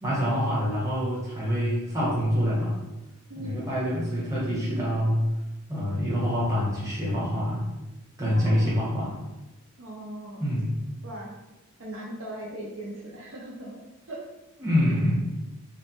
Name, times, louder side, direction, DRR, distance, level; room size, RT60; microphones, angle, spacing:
voice 1, 0.0-2.8 3.4-5.2 5.7-7.7 8.2-9.2 10.4-10.8 14.6-15.2, equal, 15° right, -7 dB, 0.9 m, -26 dB
voice 2, 3.3-3.7 4.7-4.8 8.3-8.8 9.8-10.5 11.0-11.3 11.8-13.8 14.1-14.2, right 1 dB, 60° right, -3 dB, 0.5 m, -39 dB
3.1 x 2.1 x 2.9 m, 1.0 s
head